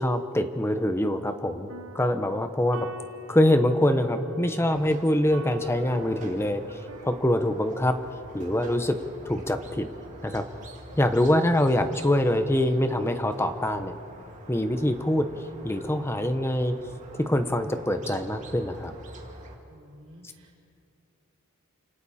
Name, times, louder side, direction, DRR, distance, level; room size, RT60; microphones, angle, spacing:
voice 1, 0.0-1.7 1.9-2.9 3.3-8.0 8.3-9.0 9.2-9.9 10.2-10.4 11.0-13.9 14.5-16.8 17.2-18.9, left 1 dB, 10° left, 8 dB, 1.0 m, -24 dB
sound 1, 1.5-8.0, right 1 dB, 85° right, 1.3 m, -45 dB
Squeak, 4.6-19.6, right 1 dB, 35° right, 2.7 m, -46 dB
voice 2, 19.7-20.6, equal, 65° right, -3 dB, 4.5 m, -53 dB
29.5 x 27.5 x 4.3 m, 2.6 s
head